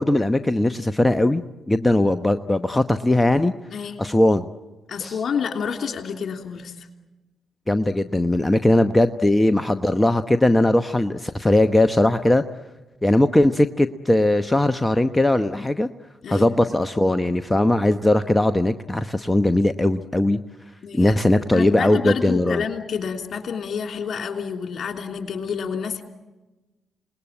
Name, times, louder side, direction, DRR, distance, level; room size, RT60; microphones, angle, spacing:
voice 1, 0.0-1.4 1.7-3.5 4.0-4.5 5.0-5.1 7.7-12.4 13.0-15.9 16.3-20.4 20.9-22.6, left 1 dB, 15° left, 10 dB, 1.0 m, -19 dB
voice 2, 4.9-6.9 16.2-16.5 20.8-21.2 21.5-26.0, left 6 dB, 55° left, 4 dB, 3.1 m, -29 dB
28.5 x 20.0 x 8.9 m, 1.2 s
hypercardioid pair, 40°, 0 cm